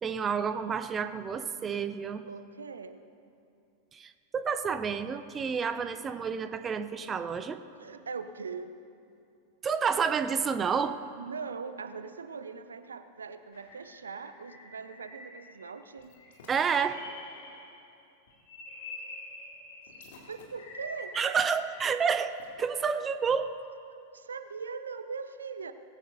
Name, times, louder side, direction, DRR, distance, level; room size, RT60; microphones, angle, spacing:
voice 1, 0.0-2.3 3.9-7.6 9.6-11.0 16.5-17.0 21.2-23.5, right 6 dB, 20° right, 11 dB, 0.5 m, -29 dB
voice 2, 2.2-3.0 7.8-8.7 11.2-16.2 20.3-21.1 23.9-25.7, right 5 dB, 70° right, 11 dB, 0.6 m, -41 dB
sound 1, 13.5-15.6 16.0-17.9 18.3-22.5, left 2 dB, 60° left, 2.5 m, -47 dB
19.5 x 16.0 x 2.7 m, 2.6 s
figure-of-eight pair, 90°, 0 cm